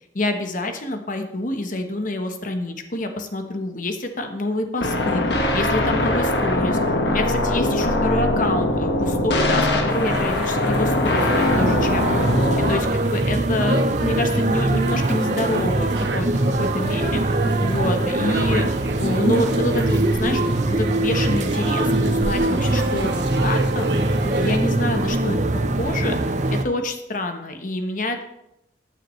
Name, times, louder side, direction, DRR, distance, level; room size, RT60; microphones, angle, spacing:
voice 1, 0.1-5.2 5.5-6.8 7.1-12.3 12.7-16.3 16.6-17.2 17.6-18.7 19.0-23.9 24.4-26.2 26.5-28.2, left 1 dB, 45° left, 6 dB, 1.1 m, -27 dB
sound 1, 4.8-12.8, left 1 dB, 70° left, 1.6 m, -21 dB
sound 2, 9.9-24.6, right 2 dB, 75° right, 1.1 m, -31 dB
sound 3, 11.2-26.6, right 2 dB, 40° right, 0.6 m, -22 dB
14.5 x 9.2 x 3.2 m, 0.84 s
head